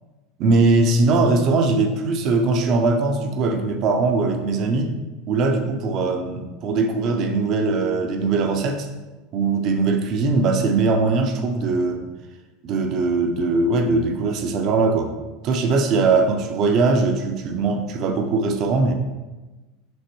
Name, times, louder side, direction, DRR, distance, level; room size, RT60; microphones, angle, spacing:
voice 1, 0.4-4.9 5.3-8.9 9.3-12.0 12.6-15.1 15.4-18.9, right 3 dB, 45° right, 5 dB, 0.6 m, -20 dB
6.1 x 2.6 x 3.0 m, 1.2 s
supercardioid pair, 145°, 0 cm